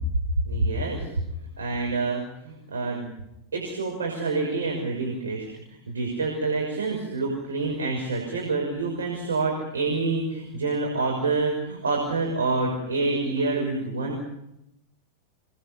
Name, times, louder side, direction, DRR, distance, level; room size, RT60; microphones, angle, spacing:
voice 1, 0.4-1.1 1.6-3.1 3.5-14.2, right 3 dB, 70° right, 0 dB, 6.1 m, -27 dB
27.5 x 20.5 x 6.9 m, 0.83 s
figure-of-eight pair, 90°, 0 cm